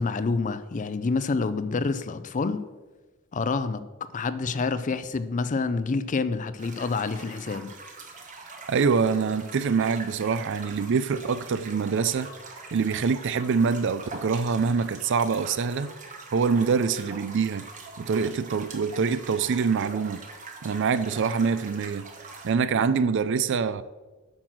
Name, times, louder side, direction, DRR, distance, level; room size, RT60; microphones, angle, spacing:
voice 1, 0.0-2.6 3.3-3.8 4.1-7.7, left 4 dB, 35° left, 0.4 m, -27 dB
sound 1, 6.6-22.5, right 3 dB, 35° right, 1.3 m, -44 dB
voice 2, 8.7-12.3 12.7-15.9 16.3-17.7 18.0-20.2 20.6-22.1 22.4-23.8, right 5 dB, 55° right, 0.4 m, -25 dB
8.6 x 6.1 x 6.1 m
head